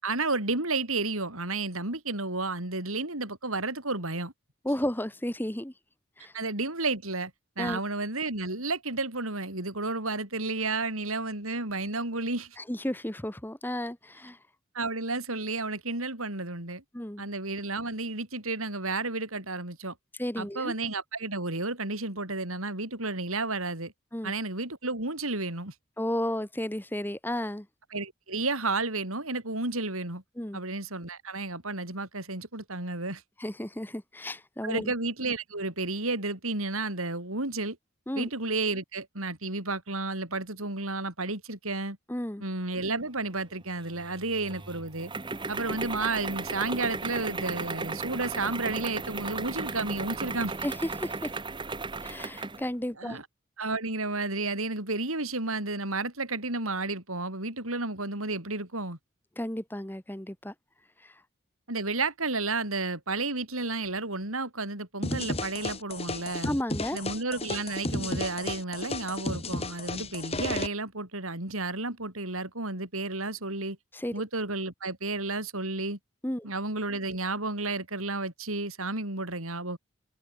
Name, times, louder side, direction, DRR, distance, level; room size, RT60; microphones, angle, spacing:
voice 1, 0.0-4.3 6.3-7.3 7.6-12.6 14.7-16.8 17.2-19.9 20.4-23.9 24.2-25.7 27.9-30.2 30.5-33.2 34.6-37.8 38.2-42.0 42.4-45.1 45.5-50.5 53.0-53.2 53.6-59.0 61.7-66.5 66.9-73.8 74.1-76.0 76.4-79.8, right 3 dB, 85° right, 6.8 m, -32 dB
voice 2, 4.6-5.7 6.2-6.3 7.6-7.8 12.6-14.4 16.9-17.2 20.2-20.7 24.1-24.3 26.0-27.7 30.4-30.6 33.4-34.9 38.1-38.3 42.1-42.4 50.6-51.3 52.0-53.2 59.4-60.5 61.0-61.2 66.4-67.0 73.9-74.1 76.2-76.5, left 1 dB, 10° left, 1.2 m, -33 dB
sound 1, 43.8-52.7, right 3 dB, 20° right, 0.9 m, -36 dB
sound 2, 65.0-70.7, left 2 dB, 30° left, 6.2 m, -33 dB
head